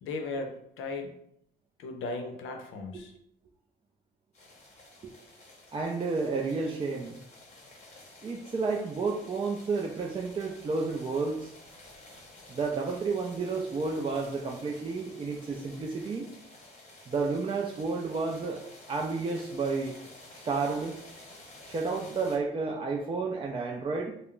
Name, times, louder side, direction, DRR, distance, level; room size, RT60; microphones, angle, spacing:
voice 1, 0.0-1.1 1.8-3.1, left 3 dB, 80° left, 4 dB, 0.6 m, -36 dB
sound 1, 4.3-22.4, left 2 dB, 35° left, 0.7 m, -52 dB
voice 2, 5.7-7.2 8.2-11.5 12.5-16.3 17.1-18.6 18.9-20.0 20.5-21.0 21.7-24.2, right 4 dB, 25° right, 0 dB, 0.3 m, -31 dB
2.3 x 2.0 x 3.7 m, 0.71 s
cardioid pair, 90°, 20 cm